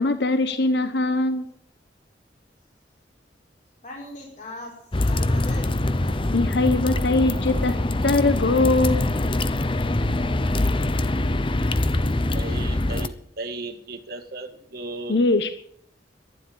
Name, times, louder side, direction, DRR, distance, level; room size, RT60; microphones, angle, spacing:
voice 1, 0.0-1.4 6.3-7.8 8.0-9.1 15.1-15.5, left 2 dB, 70° left, 10 dB, 1.1 m, -21 dB
voice 2, 3.8-4.7 5.0-6.4, left 1 dB, 45° left, -3 dB, 5.4 m, -40 dB
sound 1, 4.9-13.1, left 1 dB, 30° left, 0.8 m, -24 dB
voice 3, 12.3-15.2, right 2 dB, 60° right, 6 dB, 1.8 m, -36 dB
12.5 x 11.5 x 8.8 m, 0.68 s
head